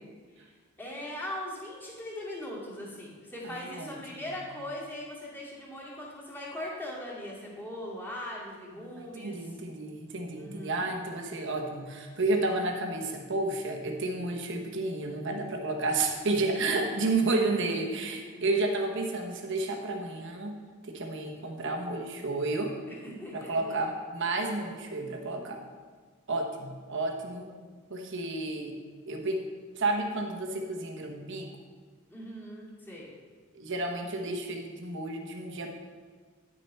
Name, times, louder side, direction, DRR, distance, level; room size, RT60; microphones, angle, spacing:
voice 1, 0.8-9.4 10.4-10.9 16.6-17.3 18.2-18.5 22.9-23.8 27.5-27.8 32.1-33.1, left 1 dB, 10° left, -6 dB, 2.4 m, -40 dB
voice 2, 3.4-3.9 8.8-20.6 20.9-22.8 23.3-25.7 26.3-27.5 27.9-28.7 29.1-29.4 29.8-31.5 33.5-35.7, right 2 dB, 60° right, 3 dB, 1.2 m, -31 dB
10.5 x 6.5 x 4.4 m, 1.5 s
head